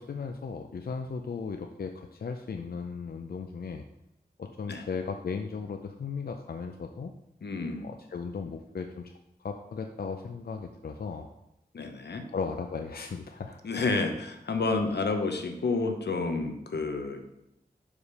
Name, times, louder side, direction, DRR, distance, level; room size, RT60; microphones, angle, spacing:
voice 1, 0.0-3.8 4.4-7.1 7.8-9.1 9.4-11.3 12.3-13.6, left 5 dB, 65° left, 5 dB, 0.5 m, -36 dB
voice 2, 7.4-7.9 11.7-12.2 13.6-17.3, left 3 dB, 85° left, 5 dB, 0.8 m, -30 dB
5.0 x 5.0 x 5.4 m, 0.85 s
wide cardioid pair, 95°, 17 cm